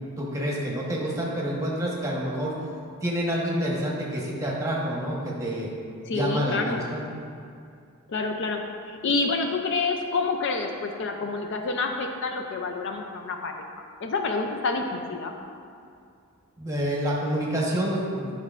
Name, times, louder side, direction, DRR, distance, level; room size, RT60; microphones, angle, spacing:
voice 1, 0.2-2.5 3.0-5.7 6.1-7.0 16.6-18.3, equal, 15° right, -4 dB, 1.0 m, -28 dB
voice 2, 6.1-6.8 8.1-13.6 14.0-15.3, left 3 dB, 55° left, 4 dB, 0.4 m, -28 dB
9.3 x 5.3 x 2.4 m, 2.4 s
head